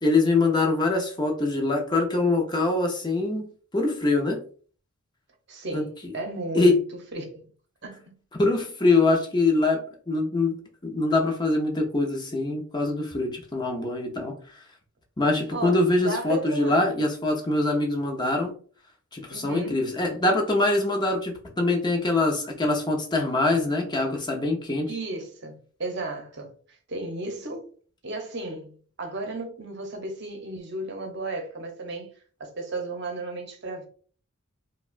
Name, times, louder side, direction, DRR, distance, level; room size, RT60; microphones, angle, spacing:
voice 1, 0.0-3.5 3.7-4.4 5.7-5.9 6.5-6.8 8.4-9.8 10.1-14.4 15.2-18.5 19.1-24.9, left 2 dB, 20° left, 0.7 m, -24 dB
voice 2, 5.5-6.8 7.1-7.5 7.8-8.2 15.5-16.9 19.3-19.8 24.9-27.7 28.0-32.1 32.4-33.9, right 2 dB, 50° right, 0.8 m, -34 dB
4.7 x 2.3 x 2.4 m
head